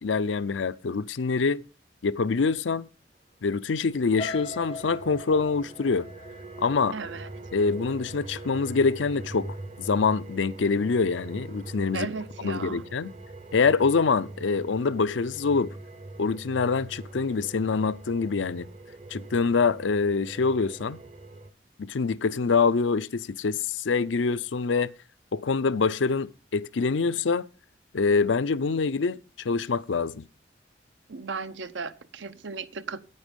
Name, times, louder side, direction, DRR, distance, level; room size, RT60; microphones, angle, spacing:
voice 1, 0.0-1.6 2.0-2.9 3.4-6.1 6.6-7.0 7.5-12.1 12.4-13.1 13.5-15.8 16.2-18.7 19.1-21.0 21.8-24.9 25.3-27.5 27.9-30.2, left 4 dB, 85° left, 0.5 m, -25 dB
sound 1, 3.6-21.5, right 2 dB, 40° right, 0.8 m, -43 dB
sound 2, 4.2-8.1 8.6-8.9 9.3-9.4, left 3 dB, 30° left, 0.5 m, -41 dB
voice 2, 6.9-7.3 11.9-12.8 31.1-33.0, right 4 dB, 80° right, 0.8 m, -35 dB
9.6 x 9.0 x 5.3 m
head